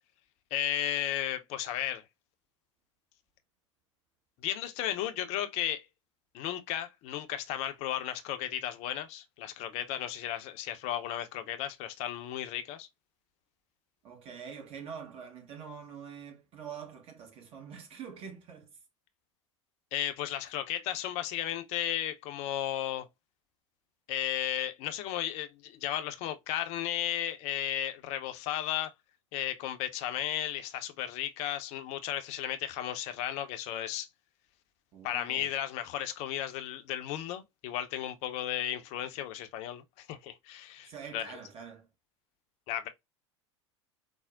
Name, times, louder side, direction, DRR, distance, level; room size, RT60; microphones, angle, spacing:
voice 1, 0.5-2.0 4.4-5.9 6.3-12.9 19.9-23.1 24.1-28.9 29.3-34.1 35.0-41.4 42.7-42.9, left 12 dB, 45° left, 0.6 m, -34 dB
voice 2, 14.0-18.7 34.9-35.5 40.9-41.9, right 7 dB, 35° right, 1.1 m, -45 dB
4.3 x 2.0 x 2.3 m
figure-of-eight pair, 80°, 16 cm